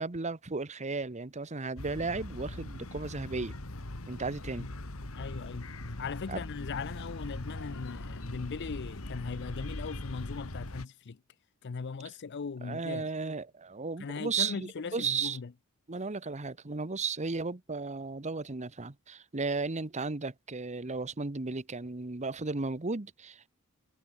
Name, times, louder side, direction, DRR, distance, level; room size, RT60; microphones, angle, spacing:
voice 1, 0.0-3.5 4.1-4.7 6.3-6.4 12.6-15.4 15.9-23.5, right 4 dB, 35° right, 1.1 m, -35 dB
sound 1, 1.8-10.9, left 1 dB, 75° left, 2.2 m, -41 dB
voice 2, 5.1-5.7 6.0-11.2 11.6-13.1 14.0-15.5, left 5 dB, 55° left, 0.5 m, -39 dB
head